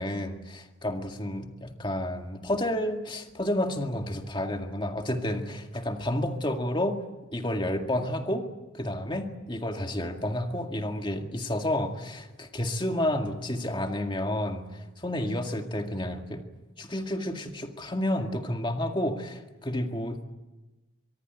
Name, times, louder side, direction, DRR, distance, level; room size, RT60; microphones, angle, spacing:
voice 1, 0.0-7.0 7.3-8.5 8.7-16.4 16.8-20.2, left 1 dB, 25° left, 4 dB, 2.0 m, -30 dB
24.5 x 22.5 x 8.2 m, 1.1 s
head